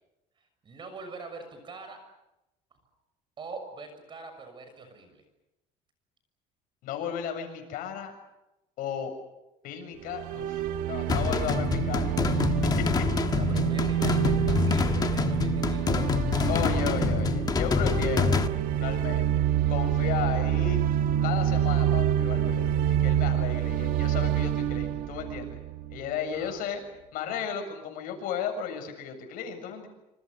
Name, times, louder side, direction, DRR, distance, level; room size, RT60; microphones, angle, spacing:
voice 1, 0.4-2.0 2.7-2.8 3.4-5.2 13.3-16.2 26.3-26.7, right 3 dB, 35° right, 8 dB, 6.4 m, -43 dB
voice 2, 6.8-8.1 8.8-9.1 9.6-13.1 16.5-18.4 18.8-19.4 19.7-20.8 21.2-25.6 25.9-26.8 27.1-29.9, left 8 dB, 75° left, 5 dB, 7.3 m, -34 dB
sound 1, 10.0-26.1, right 11 dB, 75° right, 1.5 m, -27 dB
sound 2, 11.1-18.5, left 6 dB, 25° left, 1.4 m, -26 dB
28.0 x 27.5 x 6.8 m, 0.91 s
cardioid pair, 150°, 15 cm